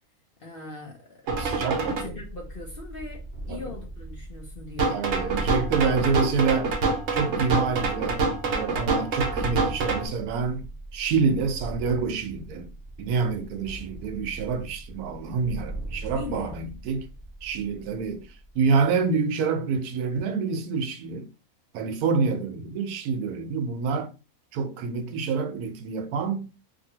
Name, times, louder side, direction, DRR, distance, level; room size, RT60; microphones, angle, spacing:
voice 1, 0.4-1.2 1.5-5.0 5.3-5.8 16.1-16.5, left 3 dB, 50° left, 0.7 m, -40 dB
sound 1, 1.3-18.9, right 2 dB, 45° right, 0.9 m, -39 dB
sound 2, 1.3-2.0 4.8-10.1, right 3 dB, 65° right, 1.0 m, -26 dB
voice 2, 1.4-2.2 3.5-3.6 4.9-6.7 7.1-10.7 10.9-12.7 13.0-17.1 17.4-21.3 21.7-24.1 24.5-26.5, right 5 dB, 80° right, 1.1 m, -27 dB
2.8 x 2.6 x 2.8 m
omnidirectional pair, 1.6 m